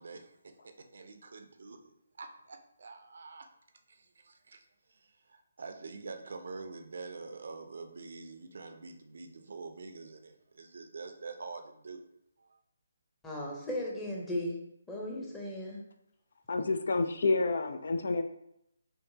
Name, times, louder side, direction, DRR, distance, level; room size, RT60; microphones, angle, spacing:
voice 1, 0.0-3.5 3.9-12.0 12.4-12.6, right 4 dB, 65° right, 5 dB, 0.5 m, -46 dB
voice 2, 13.2-14.6 14.9-15.8, left 1 dB, 10° left, -3 dB, 0.9 m, -36 dB
voice 3, 16.5-18.2, left 3 dB, 65° left, 8 dB, 0.3 m, -29 dB
4.4 x 2.6 x 2.8 m, 0.77 s
figure-of-eight pair, 150°, 0 cm